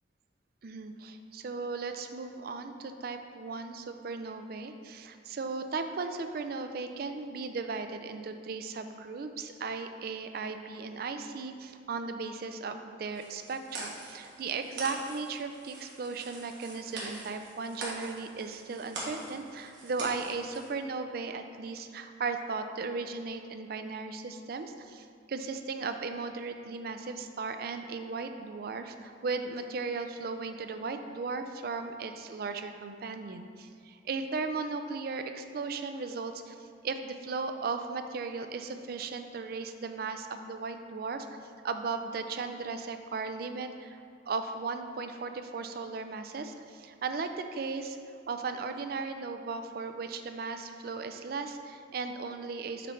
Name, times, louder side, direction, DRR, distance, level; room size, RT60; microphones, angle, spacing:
voice 1, 0.6-41.4 41.6-44.0 44.3-48.0 48.3-52.9, right 4 dB, 55° right, 7 dB, 0.4 m, -36 dB
sound 1, 13.1-20.7, right 2 dB, 70° right, 1.4 m, -43 dB
6.7 x 3.2 x 5.5 m, 2.4 s
head